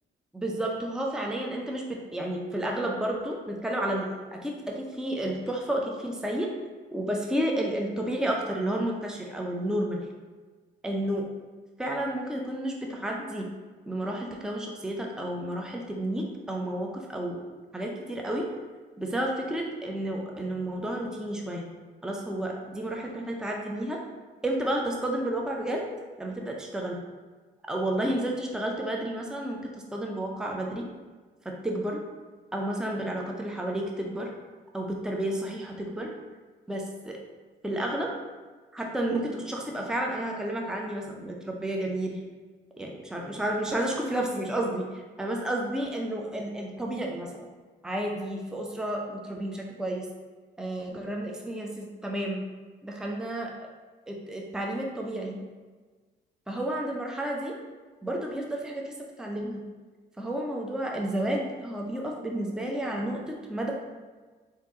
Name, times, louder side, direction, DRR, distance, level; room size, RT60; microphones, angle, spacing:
voice 1, 0.3-6.5 6.9-10.0 10.8-11.2 11.8-13.5 13.9-17.4 17.7-18.5 19.0-21.7 22.0-24.0 24.4-25.9 26.2-27.0 27.7-30.9 31.6-32.0 32.5-34.3 34.7-36.1 36.7-37.2 37.6-38.1 38.7-42.2 42.8-47.5 47.8-50.1 50.6-52.4 52.8-53.7 54.1-55.4 56.5-57.5 58.0-58.9 59.2-59.6 60.2-63.7, right 1 dB, 5° right, 0 dB, 0.6 m, -31 dB
3.7 x 2.7 x 3.8 m, 1.4 s
supercardioid pair, 55°, 20 cm